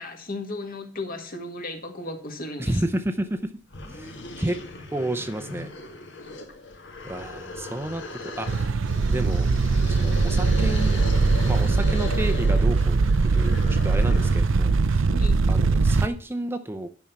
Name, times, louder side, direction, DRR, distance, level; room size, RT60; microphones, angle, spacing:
voice 1, 0.0-2.8 6.2-6.3 15.1-15.4, left 2 dB, 45° left, 4 dB, 1.9 m, -35 dB
voice 2, 2.6-3.5 3.9-4.6 4.9-5.7 7.0-8.7 9.1-9.5 9.9-11.0 11.5-13.0 13.3-15.1 15.5-16.9, right 1 dB, 10° right, 6 dB, 0.6 m, -31 dB
sound 1, 3.3-3.4 3.7-14.5, left 2 dB, 65° left, 1.7 m, -38 dB
sound 2, 8.5-16.1, right 4 dB, 80° right, 0.6 m, -21 dB
10.5 x 5.5 x 5.9 m, 0.41 s
head